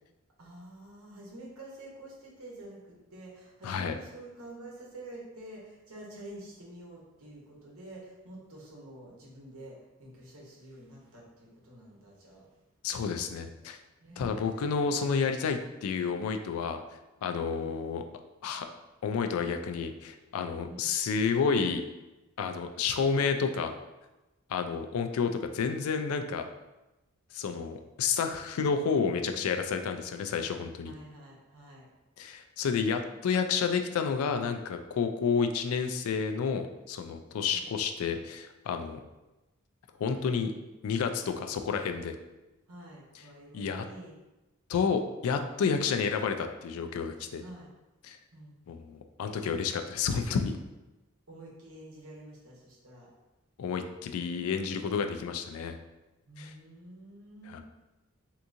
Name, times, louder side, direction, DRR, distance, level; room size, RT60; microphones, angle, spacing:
voice 1, 0.4-12.5 14.0-14.6 17.5-17.7 20.7-20.9 30.8-31.9 37.5-37.7 42.7-44.2 47.4-47.7 48.3-48.6 51.3-53.1 56.3-57.6, right 1 dB, 80° right, -3 dB, 1.0 m, -48 dB
voice 2, 3.6-4.0 12.8-13.8 14.2-16.8 17.2-18.0 18.4-18.7 19.0-21.8 22.4-23.7 24.5-26.5 27.3-30.9 32.2-39.0 40.0-40.5 40.8-42.2 43.5-43.8 44.7-47.4 48.0-48.2 48.7-50.6 53.6-55.8 56.4-56.5 57.5-57.6, left 5 dB, 80° left, 7 dB, 0.3 m, -30 dB
3.5 x 2.9 x 2.6 m, 1.0 s
head